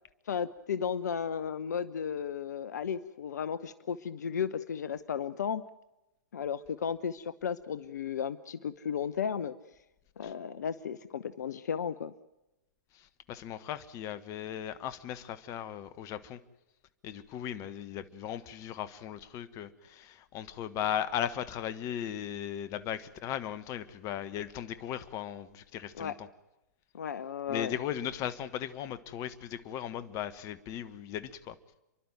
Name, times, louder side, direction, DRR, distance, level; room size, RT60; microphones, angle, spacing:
voice 1, 0.3-5.6 6.3-9.6 10.2-12.1 26.0-26.2 26.9-27.7, left 7 dB, 70° left, 15 dB, 0.8 m, -34 dB
voice 2, 12.9-16.4 17.0-26.3 27.5-31.6, left 10 dB, 35° left, 14 dB, 1.4 m, -37 dB
29.5 x 12.0 x 9.1 m, 0.95 s
figure-of-eight pair, 110°, 10 cm